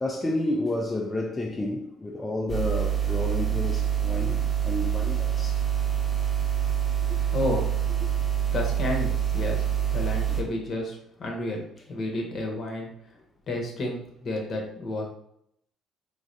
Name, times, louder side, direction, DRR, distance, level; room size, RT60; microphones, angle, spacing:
voice 1, 0.0-5.6 10.3-10.4, left 1 dB, 20° left, 0.3 m, -30 dB
sound 1, 2.5-10.4, right 9 dB, 15° right, 0.8 m, -26 dB
voice 2, 7.3-7.7 8.5-12.9 13.5-15.1, left 2 dB, 50° left, 0.8 m, -31 dB
3.2 x 2.4 x 2.6 m
cardioid pair, 90°, 0 cm